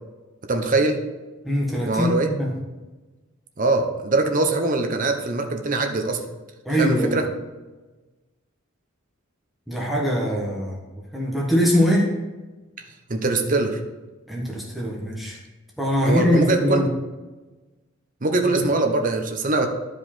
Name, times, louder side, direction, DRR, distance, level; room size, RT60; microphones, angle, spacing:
voice 1, 0.5-1.0 1.9-2.3 3.6-6.2 6.8-7.3 13.1-13.8 16.0-16.8 18.2-19.7, right 2 dB, 40° right, 4 dB, 0.9 m, -22 dB
voice 2, 1.4-2.6 6.6-7.2 9.7-10.8 11.1-12.1 14.3-15.4 15.8-16.9 18.4-18.5, equal, ahead, -3 dB, 1.2 m, -22 dB
11.0 x 5.0 x 4.3 m, 1.2 s
head